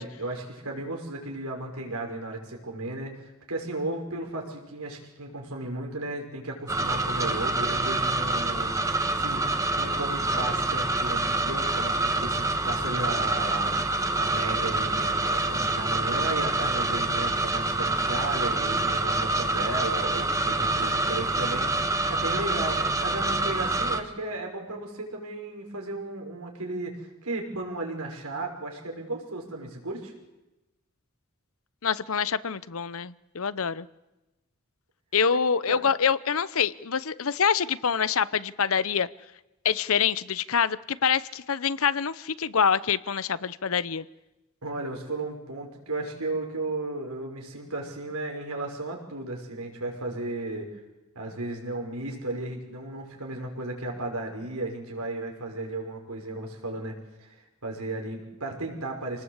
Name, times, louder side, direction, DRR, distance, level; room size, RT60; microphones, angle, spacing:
voice 1, 0.0-30.1 35.7-35.8 44.6-50.7 51.2-59.2, right 2 dB, 90° right, 2 dB, 5.9 m, -35 dB
sound 1, 6.7-24.0, right 2 dB, 15° right, 1.4 m, -26 dB
voice 2, 31.8-33.9 35.1-39.1 39.6-44.1, left 6 dB, 70° left, 17 dB, 0.8 m, -26 dB
27.0 x 19.5 x 8.2 m, 1.0 s
head